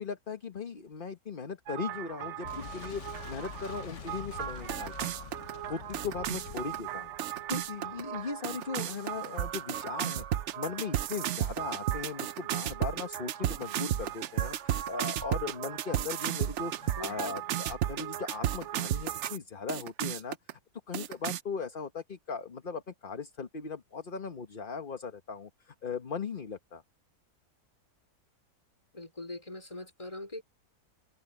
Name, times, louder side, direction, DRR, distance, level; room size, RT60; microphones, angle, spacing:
voice 1, 0.0-5.3 5.6-7.1 7.5-10.3 10.5-20.4 20.9-26.8, left 5 dB, 35° left, 1.3 m, -38 dB
sound 1, 1.7-19.4 19.7-20.5 20.9-21.4, right 11 dB, 65° right, 0.8 m, -34 dB
Boom, 2.4-8.0, left 7 dB, 55° left, 1.1 m, -46 dB
voice 2, 17.0-17.4 28.9-30.4, left 2 dB, 20° left, 4.6 m, -42 dB
omnidirectional pair, 1.7 m